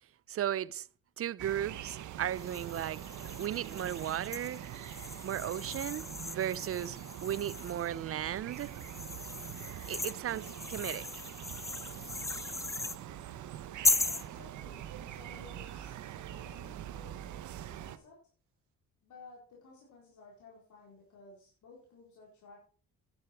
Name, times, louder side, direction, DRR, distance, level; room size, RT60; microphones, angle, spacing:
voice 1, 0.3-0.9 1.2-3.0 3.4-4.6 5.2-8.7 9.9-11.1, right 11 dB, 50° right, 0.6 m, -35 dB
sound 1, 1.4-18.0, right 11 dB, 75° right, 1.0 m, -44 dB
sound 2, 2.3-7.9 8.5-13.0 13.8-14.3, left 2 dB, 10° left, 0.5 m, -37 dB
voice 2, 14.0-16.0 16.2-17.5 17.8-18.2 19.0-22.6, left 3 dB, 75° left, 4.4 m, -55 dB
10.5 x 10.5 x 4.7 m
cardioid pair, 90°, 30 cm